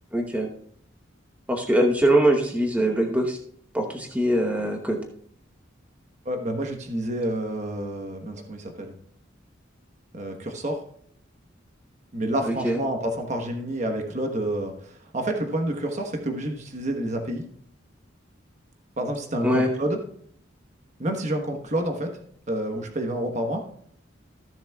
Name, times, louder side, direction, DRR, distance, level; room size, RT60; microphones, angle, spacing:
voice 1, 0.1-0.5 1.5-3.4 3.7-5.0 12.5-12.8 19.4-19.7, right 1 dB, 5° right, 2 dB, 0.9 m, -22 dB
voice 2, 6.2-8.9 10.1-10.8 12.1-17.5 19.0-20.0 21.0-22.1 22.5-23.6, right 1 dB, 35° right, 3 dB, 1.1 m, -29 dB
15.0 x 7.1 x 2.3 m, 0.63 s
head